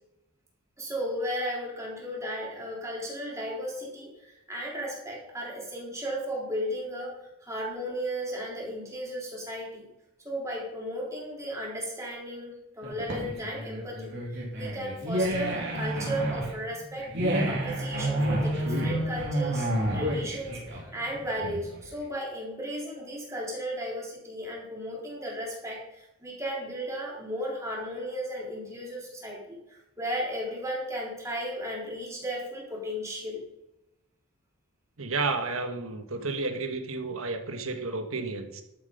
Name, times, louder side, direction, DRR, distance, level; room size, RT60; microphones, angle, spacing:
voice 1, 0.8-9.9 10.2-17.1 17.5-33.5, equal, 15° right, -3 dB, 3.8 m, -35 dB
sound 1, 12.8-21.9, right 1 dB, 55° right, 3.3 m, -30 dB
voice 2, 35.0-38.6, right 3 dB, 75° right, 6 dB, 1.5 m, -31 dB
12.0 x 7.7 x 5.3 m, 0.91 s
head